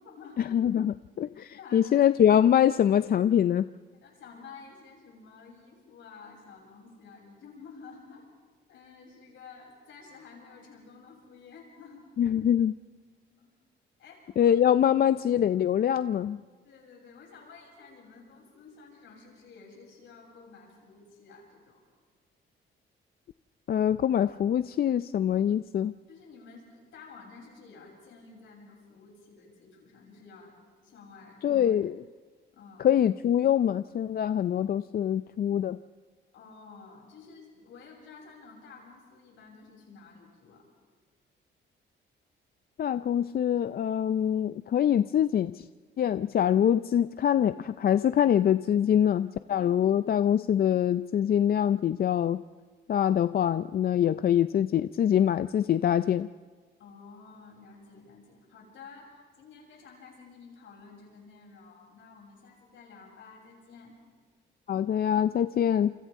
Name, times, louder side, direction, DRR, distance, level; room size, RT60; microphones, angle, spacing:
voice 1, 0.0-0.4 1.5-1.9 4.0-8.3 8.7-12.0 13.3-13.5 14.0-14.8 16.6-21.8 26.1-30.5 30.8-31.7 32.5-32.9 36.3-40.7 49.6-50.0 56.8-59.1 59.4-64.0, left 4 dB, 75° left, -1 dB, 7.6 m, -51 dB
voice 2, 0.5-3.7 12.2-12.7 14.4-16.4 23.7-25.9 31.4-32.0 32.8-35.8 42.8-45.6 46.0-52.4 52.9-56.3 64.7-65.9, left 9 dB, 50° left, 13 dB, 0.5 m, -24 dB
28.5 x 26.0 x 3.7 m, 1.5 s
cardioid pair, 90°, 20 cm